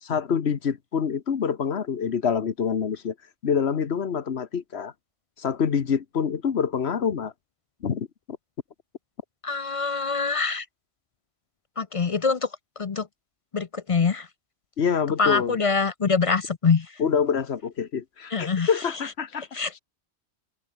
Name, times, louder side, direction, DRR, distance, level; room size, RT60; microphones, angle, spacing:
voice 1, 0.0-3.1 3.4-4.9 5.4-7.3 7.8-8.1 14.8-15.6 17.0-19.6, left 7 dB, 75° left, 1.4 m, -26 dB
voice 2, 9.4-10.7 11.8-12.5 12.8-13.1 13.5-14.3 15.2-16.9 18.3-18.7 19.5-19.8, left 5 dB, 40° left, 0.6 m, -24 dB
open air
omnidirectional pair, 1.1 m